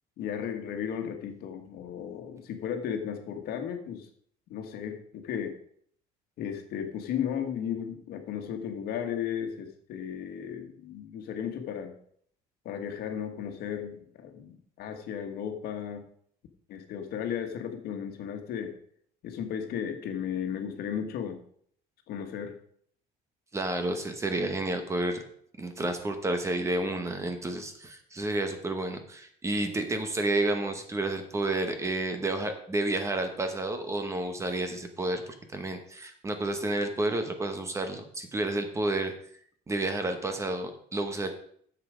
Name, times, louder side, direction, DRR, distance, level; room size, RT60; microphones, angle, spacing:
voice 1, 0.2-4.1 4.5-5.5 6.4-11.9 12.6-16.1 16.7-18.7 19.2-21.4 22.1-22.6, left 8 dB, 65° left, 5 dB, 1.5 m, -35 dB
voice 2, 23.5-25.2 25.6-39.1 39.7-41.3, right 2 dB, 15° right, 7 dB, 1.0 m, -30 dB
9.9 x 7.4 x 5.0 m, 0.63 s
cardioid pair, 165°, 17 cm